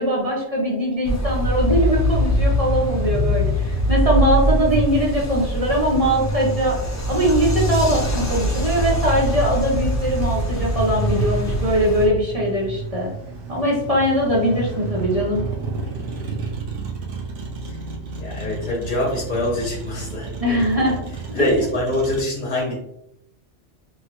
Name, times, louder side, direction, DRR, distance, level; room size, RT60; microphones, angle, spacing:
voice 1, 0.0-6.8 7.1-13.1 13.5-15.4 20.4-21.0, equal, 40° right, -4 dB, 0.6 m, -21 dB
sound 1, 1.0-12.1, equal, 25° left, 0.3 m, -22 dB
Motor vehicle (road), 9.7-22.2, right 4 dB, 85° right, 0.9 m, -33 dB
voice 2, 18.2-21.0 21.3-22.7, left 1 dB, 45° left, -4 dB, 0.9 m, -24 dB
3.0 x 2.4 x 2.9 m, 0.78 s
omnidirectional pair, 1.2 m